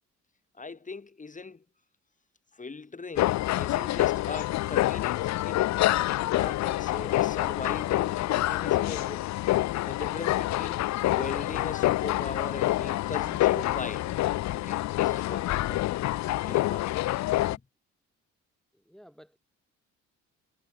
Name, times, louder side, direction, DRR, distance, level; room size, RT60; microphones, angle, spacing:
voice 1, 0.6-1.6 2.5-5.6 6.3-9.3 9.9-14.1 14.5-15.9 16.3-17.1 17.5-17.6, left 4 dB, 25° left, 2.9 m, -40 dB
sound 1, 3.2-17.6, left 16 dB, 65° left, 0.5 m, -27 dB
voice 2, 18.7-19.4, equal, ahead, 2.4 m, -53 dB
cardioid pair, 90°, 30 cm